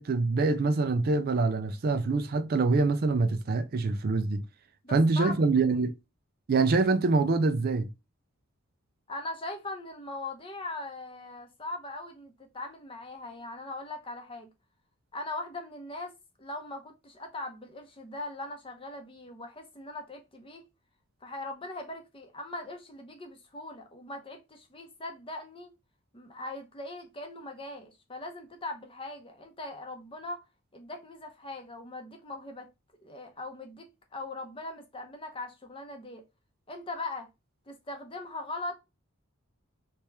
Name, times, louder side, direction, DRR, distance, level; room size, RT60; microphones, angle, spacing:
voice 1, 0.0-4.4 4.9-5.9 6.5-7.9, right 3 dB, 45° right, 0.4 m, -25 dB
voice 2, 4.8-5.4 9.1-14.5 15.1-20.7 21.2-25.8 26.1-30.4 30.7-32.7 33.0-36.2 36.7-37.3 37.7-38.7, left 2 dB, 25° left, 0.7 m, -40 dB
3.3 x 3.0 x 3.2 m
head